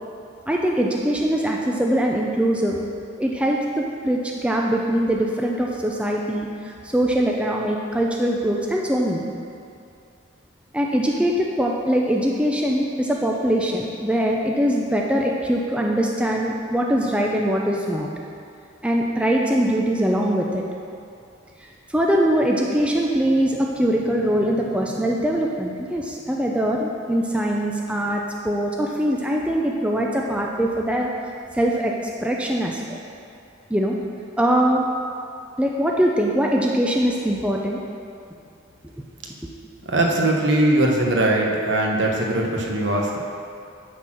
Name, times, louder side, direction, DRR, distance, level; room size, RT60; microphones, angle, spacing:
voice 1, 0.5-2.8 3.2-9.3 10.7-18.1 18.8-20.6 21.9-31.1 31.5-31.9 32.2-33.0 33.7-34.0 34.4-34.9 35.6-37.8, equal, 5° right, -1 dB, 0.5 m, -22 dB
voice 2, 39.8-43.2, right 1 dB, 65° right, -1 dB, 1.2 m, -20 dB
9.9 x 4.3 x 6.2 m, 2.5 s
head